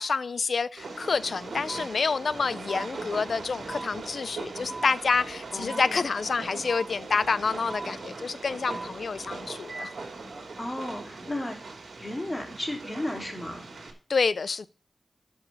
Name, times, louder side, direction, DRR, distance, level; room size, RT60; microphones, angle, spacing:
voice 1, 0.0-9.9 14.1-14.7, left 4 dB, 75° left, 0.5 m, -28 dB
Train, 0.8-13.9, right 3 dB, 85° right, 2.4 m, -40 dB
sound 1, 1.7-1.8 2.7-2.8 3.7-3.9 4.7-4.9 5.7-5.9 6.7-6.9 7.7-7.8 8.7-8.8 9.7-9.8, right 2 dB, 40° right, 5.1 m, -37 dB
voice 2, 5.5-6.0 10.6-11.6 12.0-13.6, left 1 dB, 20° left, 3.2 m, -34 dB
11.5 x 5.5 x 6.4 m
wide cardioid pair, 85°, 0 cm